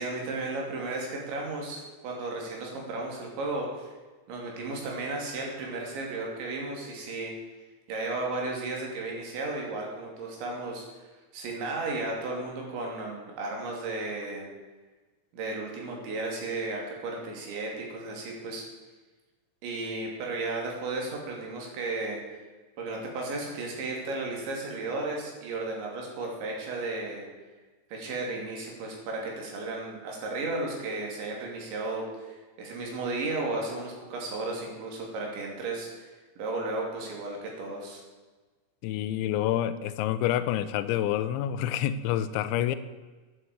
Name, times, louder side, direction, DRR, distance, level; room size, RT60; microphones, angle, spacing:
voice 1, 0.0-4.0 4.3-7.3 7.9-10.8 11.3-14.5 15.3-18.6 19.6-22.2 22.8-27.2 27.9-36.1 36.4-38.0, right 2 dB, 65° right, -1 dB, 5.0 m, -34 dB
voice 2, 38.8-42.8, left 11 dB, 85° left, 12 dB, 2.9 m, -28 dB
11.5 x 11.0 x 8.0 m, 1.3 s
omnidirectional pair, 5.6 m